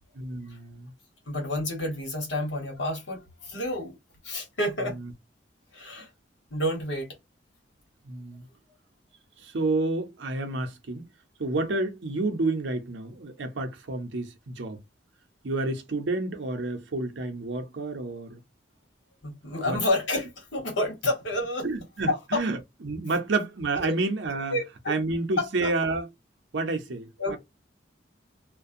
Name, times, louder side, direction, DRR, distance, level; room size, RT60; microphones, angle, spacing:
voice 1, 0.1-0.9 8.0-8.5 9.4-11.1 11.4-14.8 15.4-18.4 19.6-19.8 21.6-24.6 24.9-26.1 26.5-27.1, right 2 dB, 75° right, 0.7 m, -29 dB
voice 2, 1.3-4.0 4.2-5.0 5.7-6.1 6.5-7.1 19.2-21.7 22.1-22.4 23.8-24.0 24.5-25.0 25.4-25.7 27.2-27.4, left 1 dB, 75° left, 1.3 m, -29 dB
2.5 x 2.2 x 2.6 m
head